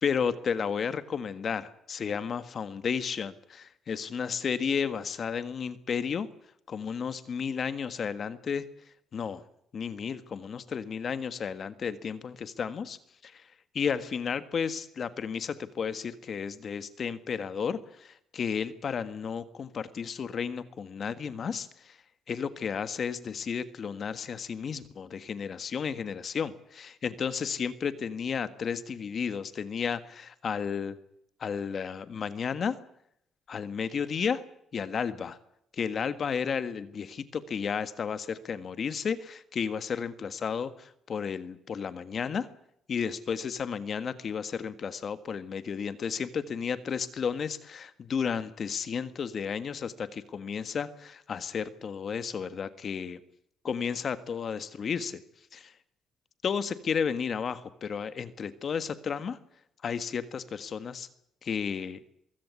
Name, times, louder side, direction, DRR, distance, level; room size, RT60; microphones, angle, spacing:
voice 1, 0.0-6.3 6.7-8.6 9.1-9.4 9.7-13.0 13.2-13.5 13.7-22.0 22.3-31.0 31.4-32.8 33.5-34.4 34.7-35.4 35.7-42.5 42.9-53.2 53.6-55.2 55.5-55.7 56.4-59.4 59.8-61.1 61.4-62.0, left 6 dB, 45° left, 13 dB, 1.6 m, -33 dB
23.5 x 16.0 x 9.7 m, 0.73 s
cardioid pair, 115°, 0 cm